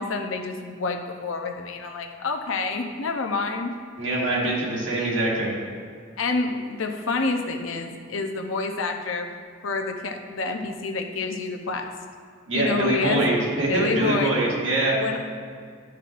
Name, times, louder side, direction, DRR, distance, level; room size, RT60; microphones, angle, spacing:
voice 1, 0.0-3.7 6.2-9.3 9.6-11.9 12.5-13.2 13.6-14.3 14.9-15.2, left 3 dB, 75° left, 4 dB, 0.7 m, -28 dB
voice 2, 4.0-5.5 12.5-15.0, right 2 dB, 65° right, -4 dB, 1.8 m, -24 dB
11.5 x 5.8 x 2.5 m, 2.1 s
head